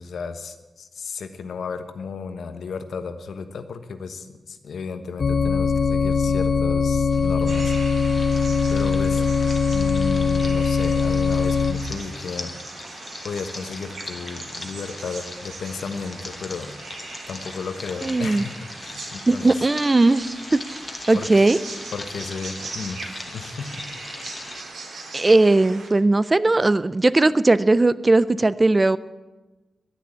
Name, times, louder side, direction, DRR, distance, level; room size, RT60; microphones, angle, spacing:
voice 1, 0.0-7.7 8.7-9.4 9.7-12.5 13.2-16.8 17.3-19.5 21.1-21.5 21.9-23.9 24.2-24.3, left 5 dB, 85° left, 9 dB, 1.1 m, -34 dB
sound 1, 5.2-11.7, left 5 dB, 45° left, 0.7 m, -21 dB
sound 2, 7.1-24.6, left 2 dB, 25° left, 1.4 m, -40 dB
sound 3, 7.5-25.9, right 3 dB, 80° right, 2.7 m, -40 dB
voice 2, 18.0-18.4 19.3-20.8 21.1-21.6 25.1-29.0, right 2 dB, 20° right, 17 dB, 0.4 m, -18 dB
11.0 x 10.5 x 8.5 m, 1.1 s
wide cardioid pair, 165°, 0 cm